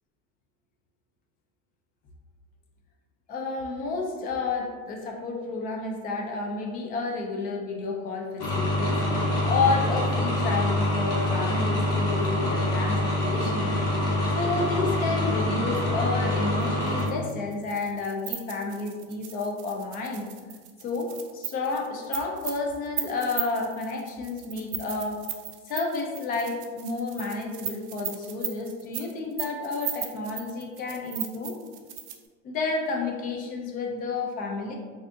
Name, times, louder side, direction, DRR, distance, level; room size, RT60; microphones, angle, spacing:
voice 1, 3.3-20.3 20.8-25.2 25.7-31.6 32.4-34.8, left 3 dB, 25° left, 2 dB, 0.3 m, -31 dB
sound 1, 8.4-17.1, left 1 dB, 70° left, 1.0 m, -25 dB
sound 2, 16.9-32.3, right 10 dB, 60° right, 0.5 m, -36 dB
3.4 x 2.6 x 2.5 m, 1.5 s
supercardioid pair, 130°, 37 cm